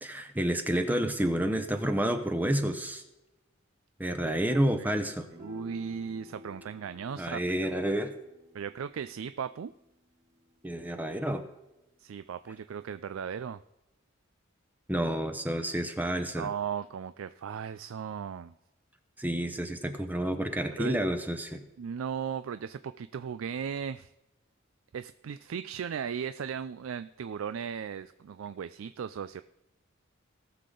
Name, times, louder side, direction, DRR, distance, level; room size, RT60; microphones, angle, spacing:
voice 1, 0.0-3.0 4.0-5.3 7.2-8.1 10.6-11.4 14.9-16.5 19.2-21.6, right 1 dB, 10° right, 6 dB, 0.8 m, -29 dB
voice 2, 4.2-5.0 5.4-7.7 8.5-9.7 12.0-13.6 16.4-18.5 20.8-21.0 21.8-24.1 24.9-29.4, right 7 dB, 80° right, 13 dB, 0.4 m, -37 dB
sound 1, 5.2-11.8, left 2 dB, 30° right, 3.0 m, -53 dB
18.5 x 6.7 x 3.8 m, 0.95 s
head